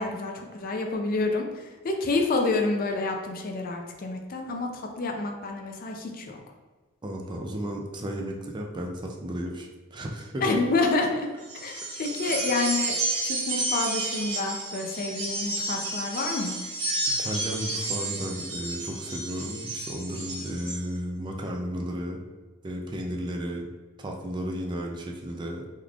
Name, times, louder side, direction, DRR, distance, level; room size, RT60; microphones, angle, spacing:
voice 1, 0.0-6.4 10.4-11.3 11.6-13.0 13.2-16.6, left 3 dB, 45° left, 3 dB, 0.4 m, -28 dB
voice 2, 7.0-10.6 12.2-12.5 17.2-22.2 22.6-23.7 24.0-25.6, equal, 20° right, 1 dB, 0.4 m, -34 dB
sound 1, 11.4-20.8, right 2 dB, 70° right, 1.3 m, -31 dB
3.6 x 3.1 x 2.4 m, 1.3 s
head